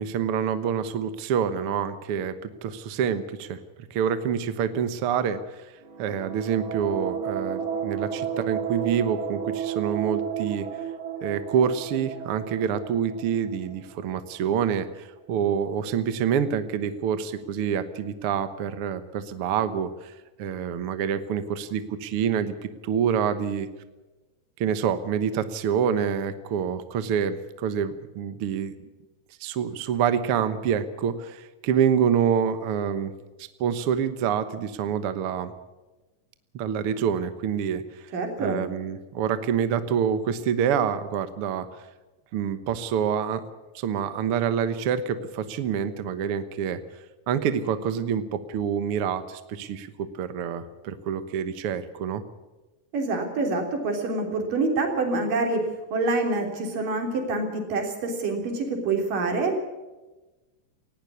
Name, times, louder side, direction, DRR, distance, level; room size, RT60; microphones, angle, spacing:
voice 1, 0.0-3.6 3.9-5.7 6.0-10.7 11.2-20.1 20.4-23.7 24.6-28.7 29.4-33.1 33.6-35.5 36.5-38.1 38.4-41.7 42.3-43.4 43.7-46.8 47.3-52.2, right 8 dB, 60° right, 11 dB, 1.6 m, -27 dB
sound 1, 5.8-14.4, right 8 dB, 45° right, 2.4 m, -32 dB
voice 2, 38.1-38.6 52.9-55.7 55.9-59.6, right 3 dB, 75° right, 3 dB, 5.0 m, -26 dB
19.0 x 17.0 x 8.5 m, 1.1 s
omnidirectional pair, 3.8 m